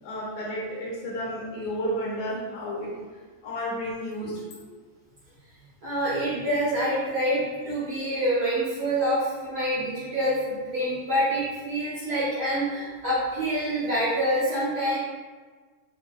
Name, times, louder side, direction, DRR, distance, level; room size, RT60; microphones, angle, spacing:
voice 1, 0.0-2.9 3.4-4.6, equal, 75° left, -5 dB, 0.9 m, -32 dB
voice 2, 5.8-15.0, equal, 80° right, -11 dB, 1.1 m, -26 dB
5.5 x 2.3 x 2.4 m, 1.4 s
omnidirectional pair, 3.5 m